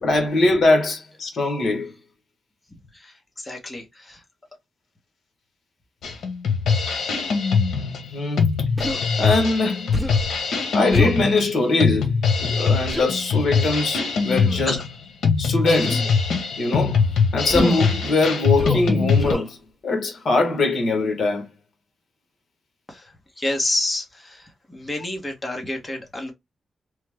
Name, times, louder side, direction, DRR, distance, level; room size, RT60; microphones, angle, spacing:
voice 1, 0.0-1.9 8.1-8.4 9.2-9.9 10.7-12.1 12.4-14.8 15.4-16.1 16.6-17.0 17.3-19.6 19.8-21.4, left 2 dB, 55° left, 1.0 m, -22 dB
voice 2, 2.7-4.2 7.4-7.6 14.7-14.8 22.9-26.3, left 1 dB, 15° left, 0.8 m, -30 dB
Drum kit, 6.0-19.3, left 5 dB, 90° left, 0.7 m, -22 dB
Human voice, 8.8-9.0 9.9-10.3 10.9-11.2 12.9-13.1 14.3-14.6 15.8-16.1 17.5-17.9 18.6-18.9 19.2-19.5, equal, 5° right, 0.3 m, -28 dB
3.1 x 2.0 x 3.2 m
wide cardioid pair, 160°, 0 cm